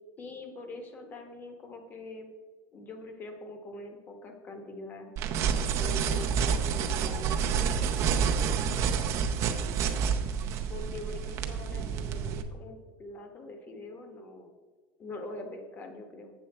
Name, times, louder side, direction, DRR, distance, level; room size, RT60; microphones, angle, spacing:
voice 1, 0.2-2.3 2.7-5.1 5.8-8.1 10.7-14.5 15.0-16.3, left 2 dB, 30° left, 5 dB, 1.2 m, -43 dB
sound 1, 5.2-12.4, right 7 dB, 45° right, 0.7 m, -29 dB
8.0 x 6.8 x 4.3 m, 1.4 s
supercardioid pair, 150°, 7 cm